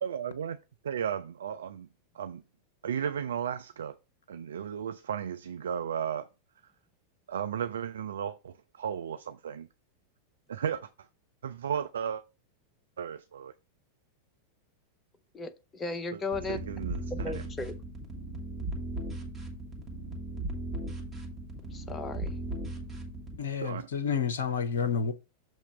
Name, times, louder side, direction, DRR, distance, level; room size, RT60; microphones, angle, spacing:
voice 1, 0.0-0.6 0.8-1.9 2.1-2.4 2.8-4.0 4.3-6.3 7.3-9.7 10.5-10.9 11.4-12.2 13.0-13.5 16.1-16.2 16.5-17.4 23.6-23.9, right 8 dB, 65° right, 0.3 m, -34 dB
voice 2, 15.3-16.6 17.1-17.7 21.7-22.4, left 3 dB, 20° left, 0.7 m, -36 dB
sound 1, 16.3-23.4, right 2 dB, 15° right, 1.7 m, -37 dB
voice 3, 23.4-25.1, left 6 dB, 65° left, 0.6 m, -29 dB
7.1 x 3.0 x 5.5 m
figure-of-eight pair, 90°, 0 cm